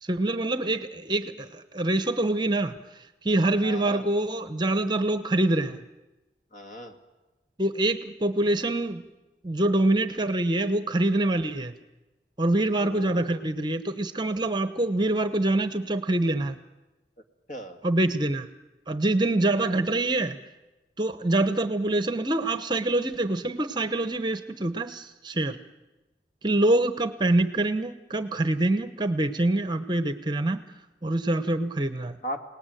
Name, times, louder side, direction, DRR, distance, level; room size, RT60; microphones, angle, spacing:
voice 1, 0.0-5.8 7.6-9.0 9.4-11.7 12.4-16.6 17.8-18.5 18.9-20.4 21.0-25.6 26.4-30.6 31.0-32.2, right 2 dB, 25° right, 10 dB, 0.9 m, -25 dB
voice 2, 3.6-4.0 6.5-7.0 12.8-13.4 17.5-17.8 32.2-32.4, left 1 dB, 45° left, 5 dB, 2.1 m, -37 dB
28.5 x 19.0 x 9.2 m, 1.1 s
head